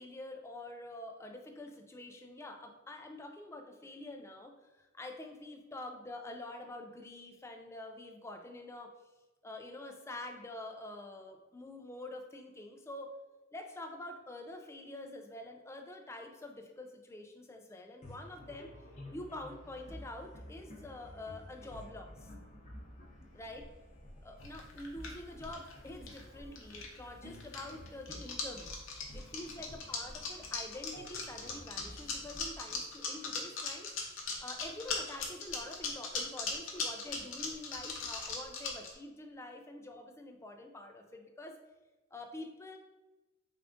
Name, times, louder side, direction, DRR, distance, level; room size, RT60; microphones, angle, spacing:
voice 1, 0.0-8.9 9.4-13.1 13.5-18.7 19.1-22.3 23.3-23.7 24.2-28.7 29.1-34.1 34.4-41.6 42.1-42.8, left 2 dB, 15° left, 4 dB, 0.3 m, -46 dB
sound 1, 18.0-33.7, equal, 35° left, 0.7 m, -51 dB
sound 2, 24.4-26.2 26.6-27.1 27.3-38.9, left 4 dB, 75° left, 0.7 m, -38 dB
3.6 x 2.4 x 3.5 m, 1.1 s
head